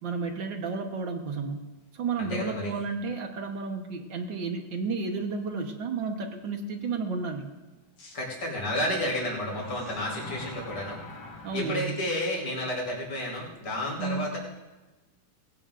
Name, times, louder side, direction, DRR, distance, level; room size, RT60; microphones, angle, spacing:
voice 1, 0.0-1.7 1.9-7.5 11.4-11.9 14.0-14.3, right 4 dB, 60° right, 4 dB, 1.2 m, -32 dB
voice 2, 2.2-2.7 8.1-11.0 11.5-14.4, left 1 dB, 40° left, -3 dB, 5.4 m, -31 dB
sound 1, 2.7-2.8 3.4-3.5 8.0-8.1 9.4-11.6, left 2 dB, 85° left, 6.3 m, -43 dB
22.0 x 18.0 x 2.6 m, 1.2 s
omnidirectional pair, 3.6 m